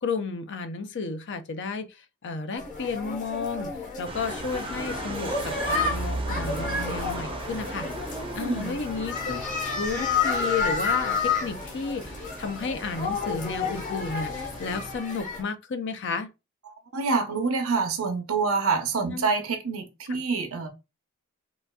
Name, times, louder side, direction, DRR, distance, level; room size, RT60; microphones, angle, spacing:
voice 1, 0.0-1.9 2.2-3.7 4.0-7.9 8.3-9.4 9.7-16.3 19.1-19.3 20.1-20.2, left 4 dB, 55° left, 0.5 m, -32 dB
sound 1, 2.6-15.4, left 4 dB, 40° left, 1.0 m, -31 dB
sound 2, 4.0-15.0, right 2 dB, 25° right, 0.6 m, -37 dB
voice 2, 8.1-8.8 16.7-20.7, right 4 dB, 75° right, 0.7 m, -27 dB
3.9 x 2.4 x 2.3 m
head